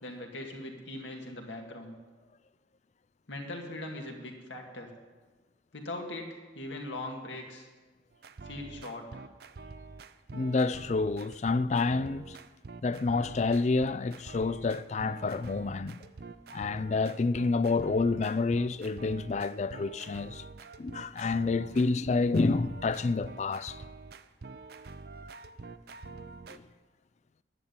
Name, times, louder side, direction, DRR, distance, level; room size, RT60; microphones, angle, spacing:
voice 1, 0.0-1.9 3.3-4.9 5.7-7.7 8.4-9.2, left 1 dB, 80° left, 2.2 m, -40 dB
sound 1, 8.1-26.6, right 3 dB, 55° right, 0.5 m, -46 dB
voice 2, 10.3-12.4 12.8-16.0 16.5-20.4 20.8-23.8 26.5-26.6, left 3 dB, 40° left, 0.4 m, -28 dB
11.0 x 8.7 x 9.6 m
head